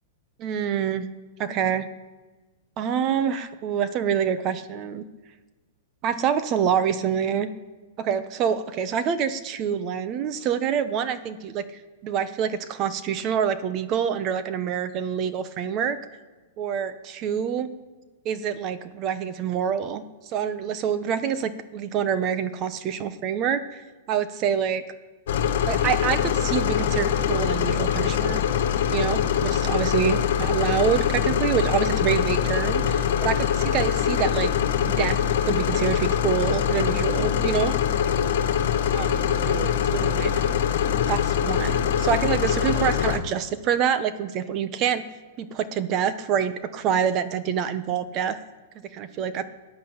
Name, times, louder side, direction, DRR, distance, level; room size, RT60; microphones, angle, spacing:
voice 1, 0.4-1.1 1.4-1.9 2.8-5.0 6.0-7.5 8.0-16.0 16.6-17.7 18.2-20.0 20.3-23.8 24.1-24.8 25.7-28.4 28.9-34.5 34.8-35.2 35.4-37.8 38.9-40.4 41.1-45.0 45.4-48.4 48.9-49.4, right 8 dB, 35° right, 11 dB, 1.1 m, -26 dB
sound 1, 25.3-43.2, left 8 dB, 65° left, 1.8 m, -23 dB
17.5 x 10.0 x 8.1 m, 1.3 s
hypercardioid pair, 140°, 0 cm